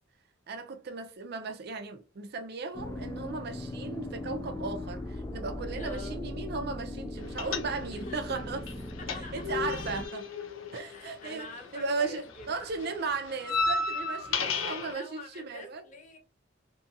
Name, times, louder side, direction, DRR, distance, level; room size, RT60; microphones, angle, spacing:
voice 1, 0.5-8.6 9.1-10.3 10.7-15.9, right 4 dB, 55° right, 0.5 m, -36 dB
sound 1, 2.7-10.1, left 1 dB, 15° left, 0.3 m, -39 dB
voice 2, 5.8-6.2 8.0-8.5 9.0-9.5 10.9-12.5 14.3-14.4 14.8-16.2, left 2 dB, 40° left, 0.7 m, -46 dB
sound 2, 7.4-8.1 8.4-11.8 12.0-14.9, left 4 dB, 75° left, 0.5 m, -33 dB
2.7 x 2.7 x 2.4 m
head